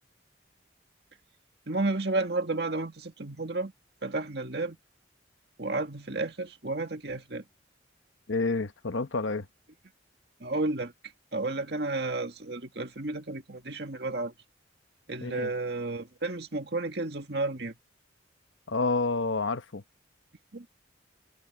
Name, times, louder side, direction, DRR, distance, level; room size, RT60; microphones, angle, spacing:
voice 1, 1.7-3.7 4.0-4.8 5.6-7.4 10.4-10.9 11.3-14.3 15.1-17.7 20.5-20.7, right 2 dB, 55° right, 2.0 m, -32 dB
voice 2, 8.3-9.5 15.2-15.5 18.7-19.8, left 3 dB, 85° left, 1.1 m, -29 dB
head